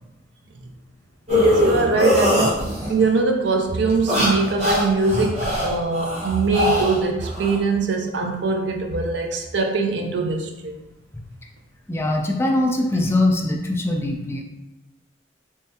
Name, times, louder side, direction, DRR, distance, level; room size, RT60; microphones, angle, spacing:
sound 1, 1.3-3.0 3.9-7.6, left 1 dB, 35° right, 1.1 m, -22 dB
voice 1, 1.3-2.6 2.9-10.8, right 3 dB, 80° right, 0.5 m, -22 dB
voice 2, 11.9-14.4, left 1 dB, 15° left, 0.4 m, -22 dB
3.6 x 3.2 x 2.8 m
head